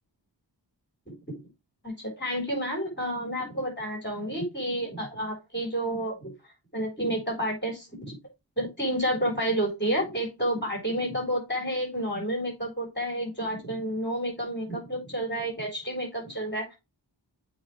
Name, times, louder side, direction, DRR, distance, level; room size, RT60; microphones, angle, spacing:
voice 1, 1.8-6.3 6.7-8.1 8.6-16.7, equal, 25° left, 0 dB, 4.2 m, -30 dB
7.8 x 4.7 x 3.2 m, 0.24 s
wide cardioid pair, 50°, 43 cm